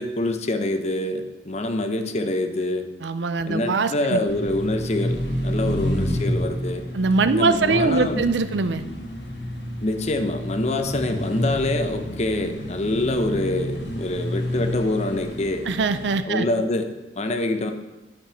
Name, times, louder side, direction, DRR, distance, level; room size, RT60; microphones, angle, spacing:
voice 1, 0.0-2.9 3.4-6.8 7.3-8.2 9.8-15.7 16.2-17.7, left 1 dB, 40° left, 7 dB, 0.8 m, -25 dB
voice 2, 3.0-4.2 5.6-5.7 6.9-8.8 15.7-16.5, right 4 dB, 85° right, 12 dB, 0.5 m, -22 dB
sound 1, 4.3-16.1, equal, 70° left, 1.5 m, -29 dB
8.8 x 5.3 x 6.9 m, 1.1 s
head